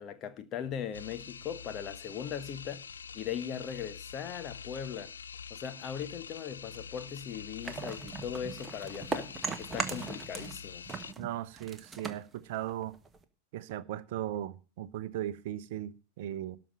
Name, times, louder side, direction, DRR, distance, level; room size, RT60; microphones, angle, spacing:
voice 1, 0.0-2.8 3.1-5.1 5.5-10.8, left 8 dB, 35° left, 1.3 m, -39 dB
sound 1, 0.9-11.1, left 6 dB, 70° left, 0.5 m, -46 dB
sound 2, 7.6-10.6 10.9-13.2, right 4 dB, 15° right, 1.3 m, -38 dB
voice 2, 11.2-13.0 13.5-16.6, right 12 dB, 50° right, 0.8 m, -37 dB
12.5 x 5.3 x 9.0 m
figure-of-eight pair, 90°, 0 cm